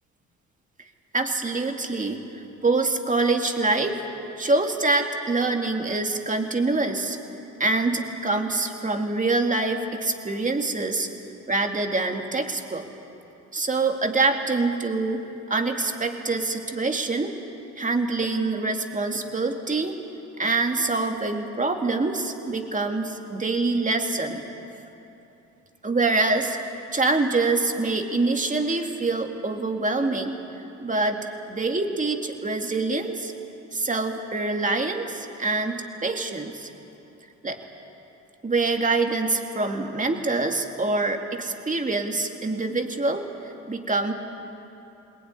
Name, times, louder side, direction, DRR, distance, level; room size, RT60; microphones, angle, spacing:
voice 1, 1.1-2.2 2.6-4.0 4.4-7.2 7.6-11.1 11.5-12.8 13.5-15.2 15.5-17.4 17.8-20.0 20.4-24.4 25.8-26.6 26.9-30.4 30.8-33.3 33.7-36.7 37.4-37.6 38.4-43.3 43.7-44.1, right 3 dB, 25° right, 4 dB, 2.4 m, -25 dB
21.5 x 20.0 x 9.8 m, 2.9 s
cardioid pair, 90°, 30 cm